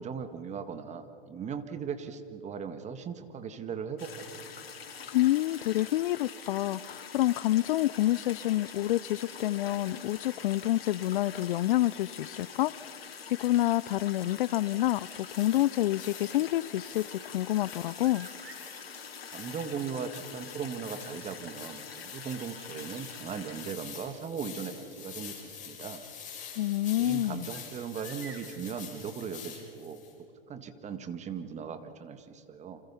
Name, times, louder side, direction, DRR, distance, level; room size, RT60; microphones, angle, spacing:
voice 1, 0.0-4.5 19.3-26.0 27.0-30.0 30.5-32.8, right 6 dB, 25° right, 1.8 m, -38 dB
sound 1, 4.0-23.7, left 6 dB, 80° left, 3.6 m, -45 dB
voice 2, 5.1-12.9 13.3-18.3 26.6-27.5, left 15 dB, 60° left, 0.6 m, -28 dB
sound 2, 14.6-19.8 20.0-20.1 20.6-25.3 25.9-29.6, right 5 dB, 85° right, 4.4 m, -57 dB
sound 3, 15.2-30.1, left 8 dB, 25° left, 6.4 m, -47 dB
29.0 x 27.0 x 5.7 m
hypercardioid pair, 115°, 29 cm